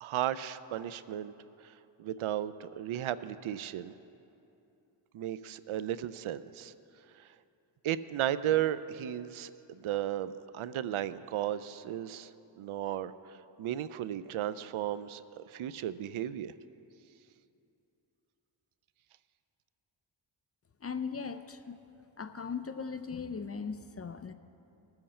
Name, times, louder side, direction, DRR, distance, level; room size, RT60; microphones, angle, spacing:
voice 1, 0.0-1.3 2.0-3.9 5.1-6.7 7.8-12.3 12.6-13.1 13.6-16.5, right 11 dB, 75° right, 15 dB, 0.5 m, -34 dB
voice 2, 20.8-21.8 22.2-24.3, left 5 dB, 30° left, 9 dB, 0.5 m, -38 dB
20.0 x 7.9 x 4.3 m, 2.8 s
cardioid pair, 75°, 49 cm